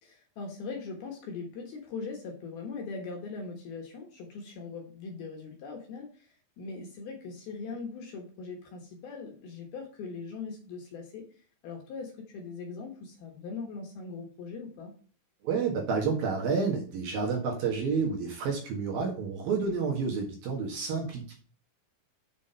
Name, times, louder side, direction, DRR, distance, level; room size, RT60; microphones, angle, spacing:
voice 1, 0.0-14.9, left 4 dB, 65° left, 1 dB, 2.7 m, -41 dB
voice 2, 15.4-21.3, right 5 dB, 60° right, -1 dB, 2.9 m, -30 dB
7.7 x 6.2 x 5.6 m, 0.42 s
omnidirectional pair, 5.6 m